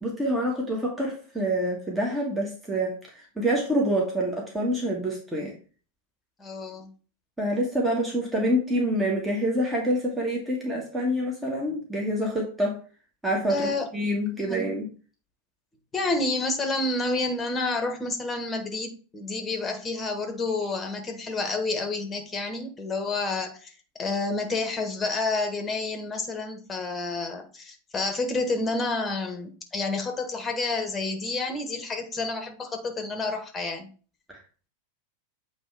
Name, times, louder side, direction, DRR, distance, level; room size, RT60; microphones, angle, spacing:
voice 1, 0.0-5.5 7.4-12.8 13.2-14.9 34.3-34.4, equal, 10° right, -2 dB, 1.6 m, -27 dB
voice 2, 6.4-6.9 13.5-13.9 14.4-14.6 15.9-23.7 24.0-33.9, left 3 dB, 15° left, 6 dB, 1.4 m, -29 dB
7.9 x 3.2 x 4.7 m, 0.38 s
figure-of-eight pair, 90°, 0 cm